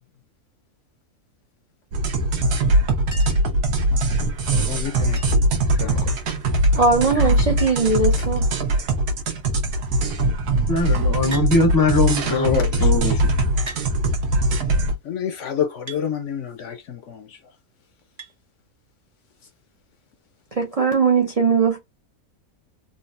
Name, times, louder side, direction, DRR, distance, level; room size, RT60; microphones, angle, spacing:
sound 1, 1.9-14.9, right 1 dB, 85° right, 1.2 m, -21 dB
Chink clink, 3.1-3.5 5.1-5.6 6.9-7.0 7.2-7.3 7.6-8.0 8.8-9.2 11.3-11.5 12.6-12.7 13.7-13.9 15.9-16.1 18.2-18.4 19.8-19.9, right 2 dB, 35° right, 0.7 m, -38 dB
voice 1, 4.5-5.2 5.7-6.1 12.2-13.4 14.2-14.3 15.0-17.4, left 8 dB, 65° left, 0.8 m, -29 dB
voice 2, 6.7-8.5 20.6-21.8, right 4 dB, 60° right, 0.3 m, -19 dB
voice 3, 10.7-13.3, left 2 dB, 25° left, 0.4 m, -21 dB
3.8 x 2.1 x 2.5 m
omnidirectional pair, 1.6 m